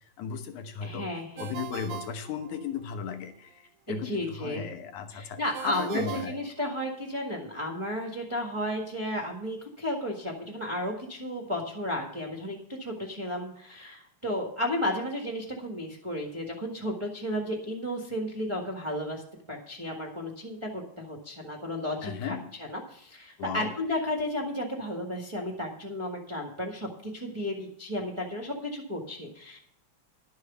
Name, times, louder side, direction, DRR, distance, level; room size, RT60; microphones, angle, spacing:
voice 1, 0.2-1.1 1.4-6.3 22.0-22.5 23.4-23.7, left 7 dB, 80° left, 8 dB, 2.6 m, -36 dB
voice 2, 0.8-1.5 3.9-4.7 5.1-19.2 19.5-29.6, left 1 dB, 20° right, 1 dB, 0.9 m, -33 dB
Ringtone, 1.4-3.0 5.5-7.2, right 10 dB, 85° right, 2.3 m, -42 dB
11.5 x 6.4 x 6.9 m, 0.65 s
omnidirectional pair, 3.5 m